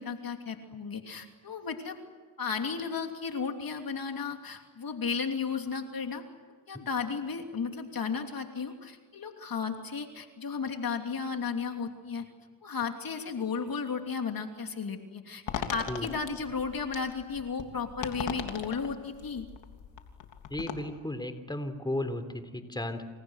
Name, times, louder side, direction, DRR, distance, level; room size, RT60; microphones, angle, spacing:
voice 1, 0.0-2.0 2.4-6.2 6.7-12.3 12.6-15.4 15.7-19.5, left 5 dB, 50° left, 4 dB, 3.0 m, -34 dB
sound 1, 15.5-20.7, left 8 dB, 70° left, 3.4 m, -39 dB
voice 2, 20.5-23.1, left 1 dB, 10° left, 8 dB, 3.5 m, -34 dB
29.0 x 28.0 x 6.5 m, 1.5 s
cardioid pair, 70°, 46 cm